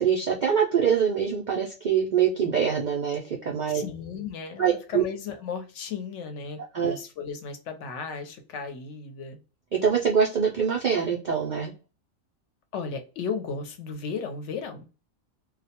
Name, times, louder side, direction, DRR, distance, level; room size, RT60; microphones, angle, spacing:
voice 1, 0.0-3.8 4.6-5.0 6.7-7.0 9.7-11.7, right 7 dB, 70° right, -1 dB, 0.4 m, -24 dB
voice 2, 3.7-9.4 12.7-14.9, left 5 dB, 70° left, 7 dB, 0.9 m, -35 dB
2.3 x 2.1 x 2.7 m, 0.33 s
omnidirectional pair, 1.3 m